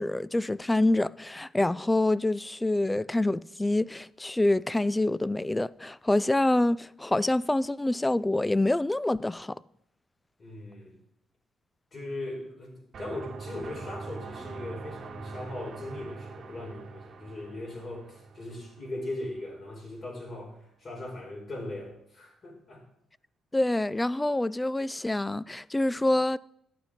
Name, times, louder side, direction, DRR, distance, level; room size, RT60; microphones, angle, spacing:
voice 1, 0.0-9.6 23.5-26.4, left 2 dB, 10° left, 0.3 m, -26 dB
voice 2, 10.4-11.0 11.9-22.8, left 1 dB, 40° left, 4.9 m, -39 dB
sound 1, 12.9-19.7, right 4 dB, 50° right, 2.2 m, -43 dB
11.5 x 8.9 x 5.1 m
cardioid pair, 90°, 0 cm